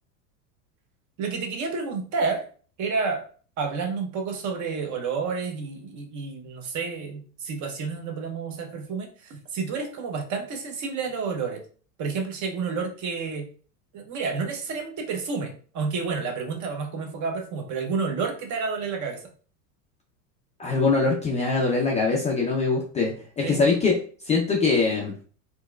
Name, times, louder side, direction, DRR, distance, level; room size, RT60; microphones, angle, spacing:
voice 1, 1.2-2.4 2.8-3.2 3.6-11.6 12.0-13.4 13.9-19.2 23.4-23.6, right 5 dB, 40° right, 4 dB, 0.8 m, -30 dB
voice 2, 20.6-24.0 24.3-25.1, left 4 dB, 15° left, -2 dB, 0.4 m, -23 dB
4.2 x 2.3 x 2.2 m, 0.41 s
supercardioid pair, 120°, 47 cm